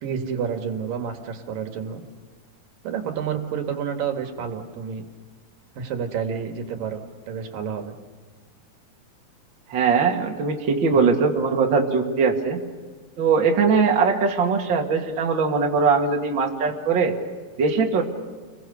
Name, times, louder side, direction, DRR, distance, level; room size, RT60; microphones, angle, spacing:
voice 1, 0.0-2.0 2.8-5.0 5.7-7.9 10.9-11.1, right 7 dB, 70° right, 5 dB, 3.3 m, -29 dB
voice 2, 9.7-12.6 13.2-17.1 17.6-18.0, right 5 dB, 35° right, 1 dB, 2.6 m, -21 dB
29.5 x 22.0 x 6.7 m, 1.5 s
omnidirectional pair, 4.1 m